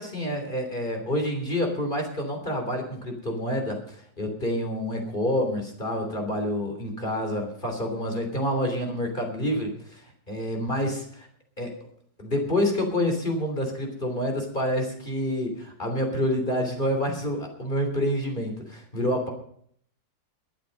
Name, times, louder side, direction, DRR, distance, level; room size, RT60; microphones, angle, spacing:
voice 1, 0.0-11.3 11.6-11.7 12.2-19.3, left 1 dB, 25° left, 3 dB, 3.5 m, -28 dB
23.0 x 7.8 x 5.3 m, 0.63 s
omnidirectional pair, 2.1 m